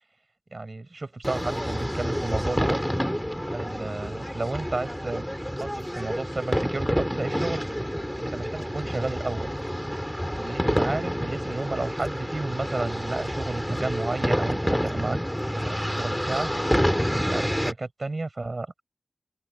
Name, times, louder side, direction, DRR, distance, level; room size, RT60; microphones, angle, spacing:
voice 1, 0.5-2.8 3.5-5.3 5.5-7.6 8.2-9.5 10.3-15.2 15.5-16.5 17.1-18.7, right 2 dB, 50° right, 5.9 m, -32 dB
sound 1, 1.2-17.7, equal, 5° left, 2.8 m, -28 dB
wide cardioid pair, 75°, 0 cm